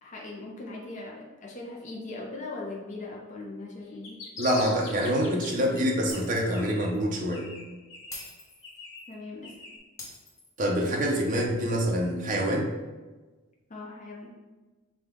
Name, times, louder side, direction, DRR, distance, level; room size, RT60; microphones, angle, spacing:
voice 1, 0.0-4.2 9.1-9.5 13.7-14.3, left 2 dB, 40° left, -2 dB, 0.6 m, -40 dB
sound 1, 3.8-5.8 6.1-7.0 7.3-9.8, left 3 dB, 85° left, 0.9 m, -43 dB
voice 2, 4.4-7.5 10.6-12.7, equal, 40° right, -1 dB, 0.7 m, -26 dB
Shatter, 6.1-6.6 6.9-7.1 8.1-9.1 10.0-11.0, left 2 dB, 15° left, 0.9 m, -45 dB
5.3 x 2.3 x 3.5 m, 1.2 s
head